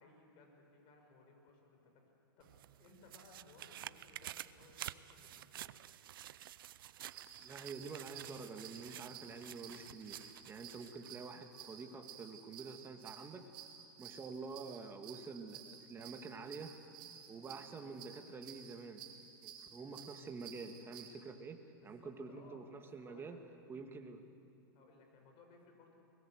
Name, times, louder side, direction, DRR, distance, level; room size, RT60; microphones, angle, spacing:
voice 1, 0.0-2.0 2.4-2.5 2.8-5.7 21.8-23.4 24.7-25.9, left 3 dB, 45° left, 2 dB, 6.2 m, -62 dB
sound 1, 2.4-11.1 11.6-11.7, right 13 dB, 75° right, 0.6 m, -51 dB
sound 2, 7.1-21.1, right 8 dB, 40° right, 3.2 m, -54 dB
voice 2, 7.4-13.7 14.0-16.8 17.3-19.0 19.4-23.4 23.7-24.2, right 4 dB, 20° right, 6 dB, 1.9 m, -48 dB
23.5 x 20.5 x 7.9 m, 2.8 s
hypercardioid pair, 120°, 12 cm